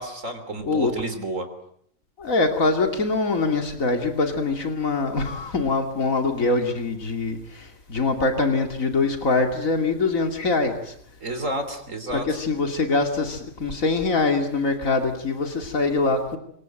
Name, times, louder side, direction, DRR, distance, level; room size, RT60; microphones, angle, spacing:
voice 1, 0.0-1.5 11.2-12.3, right 2 dB, 75° right, 8 dB, 3.6 m, -30 dB
voice 2, 2.2-10.9 12.3-16.4, left 3 dB, 85° left, 5 dB, 2.9 m, -23 dB
27.0 x 23.0 x 9.0 m, 0.68 s
omnidirectional pair, 1.4 m